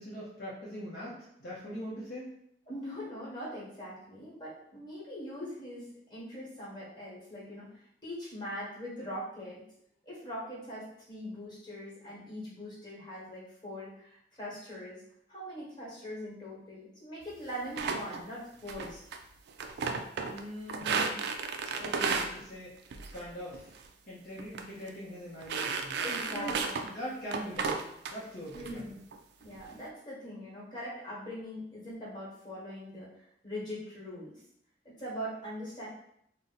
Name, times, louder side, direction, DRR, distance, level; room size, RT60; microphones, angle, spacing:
voice 1, 0.0-2.3 20.3-21.2 21.8-22.7 23.1-23.7 24.1-26.0 26.3-28.8, equal, 55° left, -7 dB, 0.7 m, -42 dB
voice 2, 2.7-5.8 6.1-9.6 10.0-15.0 15.3-19.0 26.0-26.8 28.5-29.0 29.4-33.1 33.4-34.3 34.8-35.9, equal, 25° left, -7 dB, 1.3 m, -42 dB
sound 1, 17.8-18.2 18.7-19.2 19.5-20.4 20.7-22.3 22.9-23.2 23.5-23.9 24.4-24.6 24.9-25.0 25.4-26.9 27.3-28.1 28.5-28.7 29.1-29.6, right 5 dB, 65° right, 0.3 m, -33 dB
2.6 x 2.1 x 4.0 m, 0.73 s
head